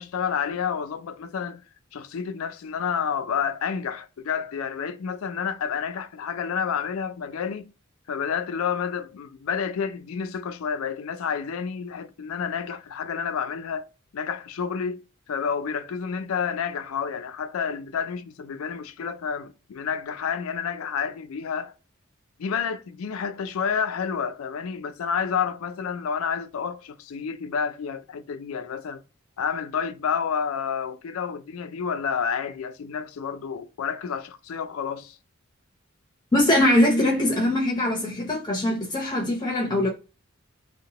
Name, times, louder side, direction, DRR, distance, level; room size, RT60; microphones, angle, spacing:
voice 1, 0.0-1.6 1.9-7.7 8.1-13.9 14.1-15.0 15.3-21.7 22.4-29.0 29.4-35.2, left 6 dB, 75° left, 0.4 m, -29 dB
voice 2, 36.3-39.9, left 1 dB, 20° left, 0.6 m, -22 dB
2.8 x 2.1 x 2.8 m
head